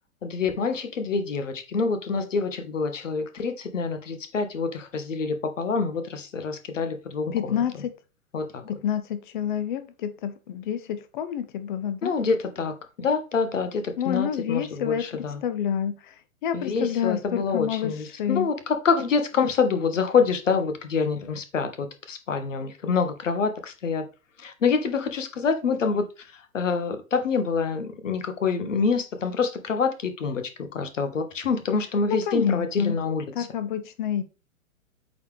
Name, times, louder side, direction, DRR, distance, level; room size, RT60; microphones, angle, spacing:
voice 1, 0.2-7.6 8.3-8.7 12.0-15.4 16.5-24.0 24.4-33.5, left 5 dB, 60° left, 1.3 m, -26 dB
voice 2, 7.3-7.9 8.7-12.1 14.0-16.1 16.4-17.9 18.2-18.5 32.1-33.0 33.3-34.2, left 9 dB, 35° left, 0.9 m, -28 dB
8.4 x 4.2 x 3.3 m
figure-of-eight pair, 110°, 42 cm